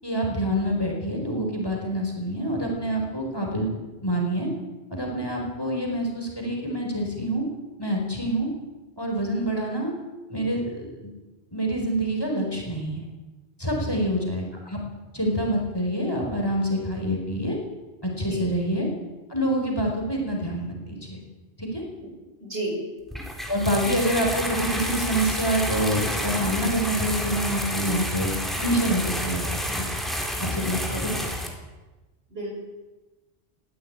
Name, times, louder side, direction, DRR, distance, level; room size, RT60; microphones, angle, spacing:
voice 1, 0.0-3.7 4.0-4.5 4.9-7.4 7.8-8.5 9.0-9.9 10.3-11.1 11.5-13.0 13.6-14.8 15.1-17.6 18.0-18.9 19.3-21.2 21.6-21.8 23.5-28.3 28.6-29.9 30.4-31.2, right 1 dB, 20° left, 0 dB, 4.8 m, -26 dB
voice 2, 18.1-18.5 22.0-22.1 22.4-22.8 30.5-31.1 32.3-32.5, right 1 dB, 60° right, -1 dB, 7.1 m, -34 dB
sound 1, 23.1-31.5, equal, ahead, 3.6 m, -30 dB
21.0 x 15.5 x 9.0 m, 1.2 s
omnidirectional pair, 1.2 m